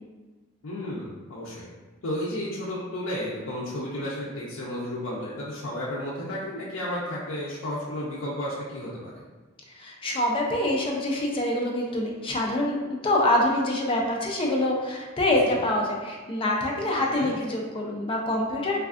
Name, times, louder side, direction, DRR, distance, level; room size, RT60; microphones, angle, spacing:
voice 1, 0.6-1.7 2.0-9.2 15.4-15.5 16.9-17.4, left 1 dB, 85° left, -6 dB, 0.5 m, -33 dB
voice 2, 9.7-18.8, left 1 dB, 25° left, -1 dB, 0.4 m, -25 dB
3.3 x 2.3 x 2.4 m, 1.2 s
head